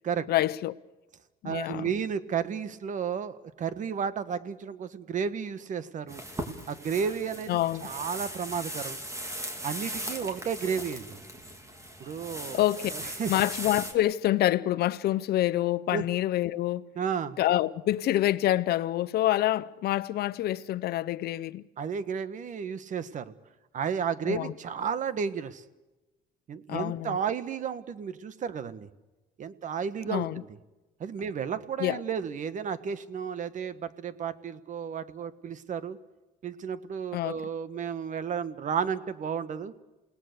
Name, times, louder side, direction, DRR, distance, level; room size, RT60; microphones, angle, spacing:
voice 1, 0.3-0.7 1.4-1.9 7.5-7.9 12.5-12.9 13.3-16.8 17.4-21.6 24.3-24.5 26.7-27.2 30.1-30.4 31.8-32.0 37.1-37.4, left 14 dB, 70° left, 0.9 m, -27 dB
voice 2, 1.4-6.2 6.7-9.0 9.6-11.2 12.0-12.6 12.9-13.3 15.9-16.1 16.9-17.4 21.8-23.3 23.7-25.6 26.5-28.9 29.4-30.5 31.0-36.0 36.4-39.7, right 7 dB, 50° right, 1.4 m, -32 dB
sound 1, 6.1-13.9, right 1 dB, 20° right, 3.6 m, -38 dB
29.0 x 18.5 x 6.8 m
cardioid pair, 110°, 17 cm